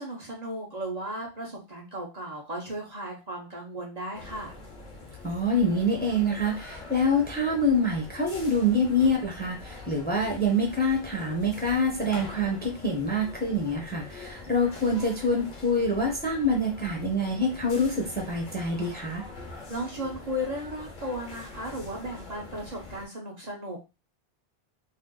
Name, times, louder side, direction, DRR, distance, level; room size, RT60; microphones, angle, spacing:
voice 1, 0.0-4.5 19.7-23.8, equal, 45° right, -1 dB, 0.9 m, -35 dB
sound 1, 4.1-23.1, left 3 dB, 50° left, 0.9 m, -44 dB
voice 2, 5.2-19.2, left 1 dB, 10° left, -1 dB, 0.7 m, -26 dB
2.7 x 2.4 x 3.7 m, 0.27 s
omnidirectional pair, 1.1 m